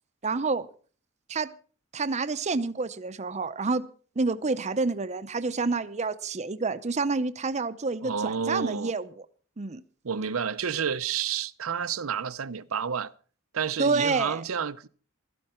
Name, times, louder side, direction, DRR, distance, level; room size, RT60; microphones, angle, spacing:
voice 1, 0.2-0.7 1.3-1.5 1.9-3.8 4.2-9.1 9.6-9.8 13.8-14.4, right 3 dB, 35° right, 0.6 m, -28 dB
voice 2, 8.0-8.9 10.0-13.1 13.5-14.9, right 7 dB, 85° right, 0.7 m, -30 dB
16.0 x 13.0 x 4.4 m
head